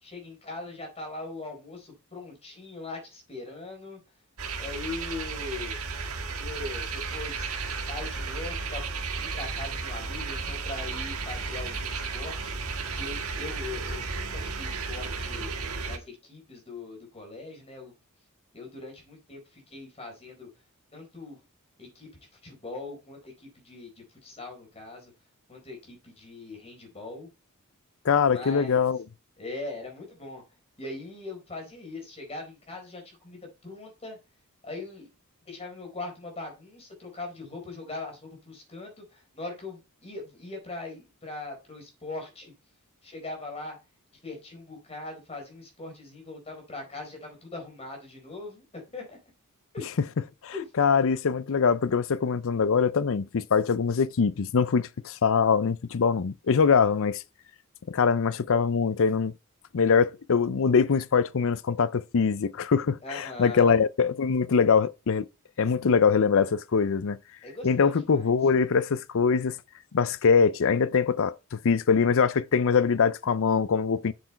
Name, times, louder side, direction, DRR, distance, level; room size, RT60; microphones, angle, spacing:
voice 1, 0.0-4.0 4.6-5.8 6.3-8.9 9.2-12.6 12.9-15.5 15.8-17.9 18.5-20.5 20.9-21.4 21.8-22.1 22.4-25.1 25.5-27.3 28.3-28.8 29.4-30.4 30.8-34.2 34.6-35.1 35.5-42.5 43.0-43.8 44.2-49.2 49.7-49.9 50.5-50.7 63.0-63.8 67.4-68.3, left 3 dB, 30° left, 4.5 m, -40 dB
sound 1, 4.4-16.0, right 4 dB, 75° right, 1.8 m, -33 dB
voice 2, 28.0-29.0 50.4-57.2 57.9-59.3 59.7-65.3 65.6-67.2 67.6-69.6 69.9-74.1, left 5 dB, 65° left, 0.5 m, -23 dB
7.7 x 7.2 x 4.4 m
head